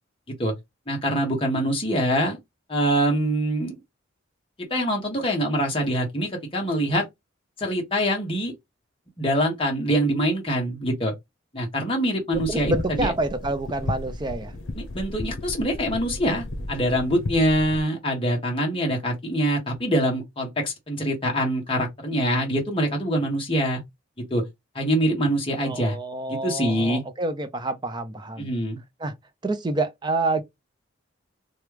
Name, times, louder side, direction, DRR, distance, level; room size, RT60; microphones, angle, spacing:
voice 1, 0.9-2.4 2.7-3.8 4.7-7.0 7.6-8.5 9.2-11.1 11.5-13.1 14.8-23.8 24.3-24.4 24.7-26.0 26.3-27.0 28.4-28.8, equal, 25° left, 1.2 m, -24 dB
sound 1, 12.3-17.8, left 2 dB, 85° left, 0.7 m, -33 dB
voice 2, 12.3-14.5 25.6-28.5 29.0-29.1 29.4-30.4, right 2 dB, 20° right, 0.5 m, -28 dB
3.0 x 2.3 x 3.2 m
head